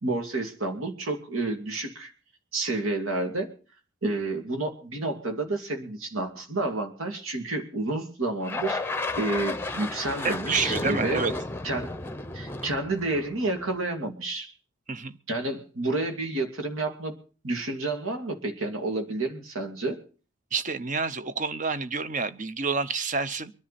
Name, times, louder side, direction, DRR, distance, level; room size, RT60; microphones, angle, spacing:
voice 1, 0.0-2.1 2.5-3.5 4.0-11.3 11.6-11.9 12.3-14.5 15.3-17.1 17.4-20.0, right 2 dB, 80° right, 5 dB, 2.6 m, -30 dB
sound 1, 8.4-13.8, left 2 dB, 10° left, 0.8 m, -33 dB
voice 2, 10.2-11.3 14.9-15.2 20.5-23.5, right 4 dB, 35° right, 13 dB, 0.7 m, -28 dB
23.5 x 10.5 x 4.2 m, 0.37 s
head